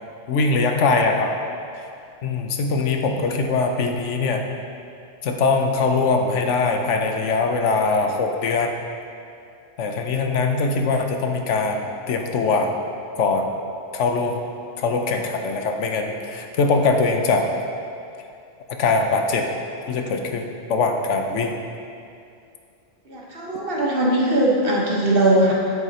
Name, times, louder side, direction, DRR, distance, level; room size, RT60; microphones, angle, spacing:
voice 1, 0.3-1.3 2.2-4.4 5.2-8.7 9.8-11.8 12.1-12.7 13.2-13.4 13.9-14.4 14.8-17.4 18.8-19.5 19.9-21.5, left 4 dB, 85° left, 4 dB, 1.1 m, -22 dB
voice 2, 23.1-25.5, right 1 dB, 55° right, -3 dB, 1.4 m, -20 dB
9.4 x 8.0 x 2.9 m, 2.5 s
omnidirectional pair, 1.2 m